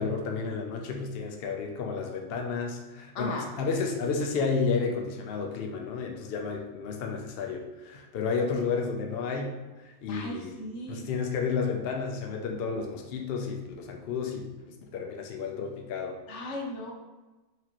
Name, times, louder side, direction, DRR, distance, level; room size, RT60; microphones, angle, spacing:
voice 1, 0.0-9.6 9.8-10.6 10.9-16.2, left 5 dB, 75° left, 2 dB, 0.5 m, -31 dB
voice 2, 3.1-3.5 10.1-11.1 16.3-16.9, left 1 dB, 60° left, 0 dB, 0.9 m, -36 dB
4.4 x 2.9 x 2.9 m, 1.2 s
omnidirectional pair, 1.6 m